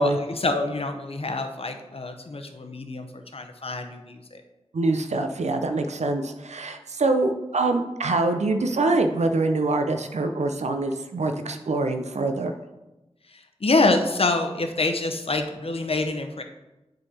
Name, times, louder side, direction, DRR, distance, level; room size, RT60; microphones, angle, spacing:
voice 1, 0.0-4.4 13.6-16.4, left 2 dB, 55° left, 6 dB, 0.7 m, -26 dB
voice 2, 4.7-12.5, right 2 dB, 80° right, 6 dB, 0.6 m, -24 dB
7.8 x 3.9 x 4.1 m, 1.0 s
wide cardioid pair, 50°, 11 cm